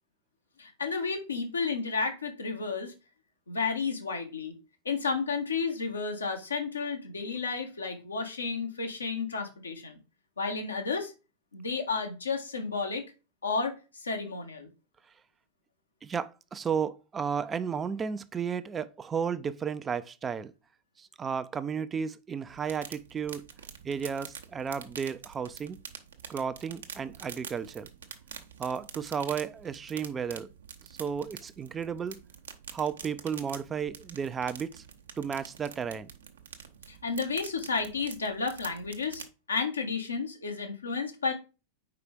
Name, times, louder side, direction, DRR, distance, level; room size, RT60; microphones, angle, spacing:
voice 1, 0.6-2.9 3.5-4.5 4.8-10.0 10.4-11.1 11.5-13.0 13.4-14.7 36.9-41.3, left 4 dB, 75° left, 1.4 m, -32 dB
voice 2, 16.0-20.5 21.0-23.4 23.8-25.8 26.3-27.9 28.6-30.5 31.0-32.2 32.7-34.8 35.2-36.1, right 7 dB, 20° right, 0.5 m, -33 dB
sound 1, 22.5-39.3, right 7 dB, 65° right, 0.9 m, -47 dB
4.8 x 4.7 x 5.0 m
figure-of-eight pair, 90°, 0 cm